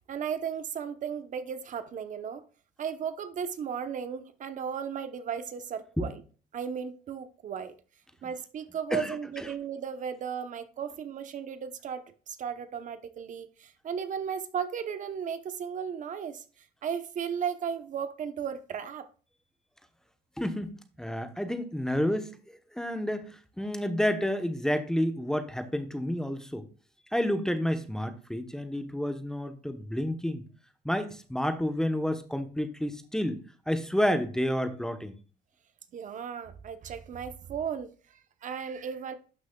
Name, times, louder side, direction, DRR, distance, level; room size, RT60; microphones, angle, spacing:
voice 1, 0.1-2.4 2.8-6.2 6.5-7.7 8.2-19.1 35.9-39.1, right 7 dB, 50° right, 0.8 m, -35 dB
voice 2, 20.4-22.3 22.7-26.7 27.1-30.4 30.8-33.4 33.7-35.2, equal, 5° left, 0.9 m, -30 dB
11.5 x 6.1 x 2.3 m
cardioid pair, 110°, 17 cm